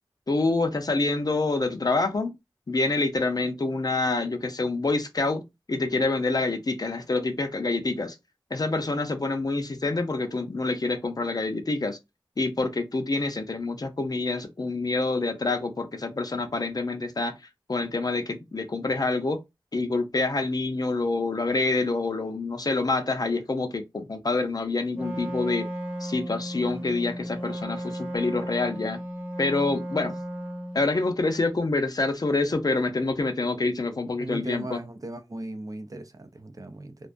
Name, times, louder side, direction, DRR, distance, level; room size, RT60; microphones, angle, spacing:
voice 1, 0.3-2.3 2.7-8.2 8.5-12.0 12.4-17.3 17.7-19.4 19.7-25.7 26.0-29.0 29.4-30.2 30.7-34.8, left 3 dB, 50° left, 0.5 m, -27 dB
Wind instrument woodwind instrument, 24.9-30.9, equal, 15° right, 1.0 m, -35 dB
voice 2, 34.2-37.1, right 2 dB, 40° right, 0.5 m, -37 dB
2.3 x 2.2 x 2.4 m
wide cardioid pair, 55°, 9 cm